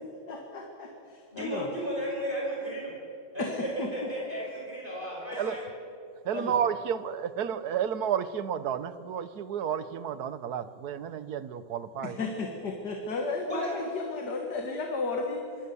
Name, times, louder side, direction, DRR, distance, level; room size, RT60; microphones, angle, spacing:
voice 1, 0.3-1.7 3.4-3.9 5.3-5.5 6.3-6.6 12.0-15.4, left 3 dB, 55° left, 2 dB, 2.4 m, -34 dB
voice 2, 1.3-2.9 3.3-5.7 13.5-13.7, equal, 25° right, -4 dB, 5.7 m, -34 dB
voice 3, 6.2-12.2, right 8 dB, 60° right, 13 dB, 1.3 m, -31 dB
25.5 x 22.0 x 7.1 m, 2.7 s
omnidirectional pair, 2.1 m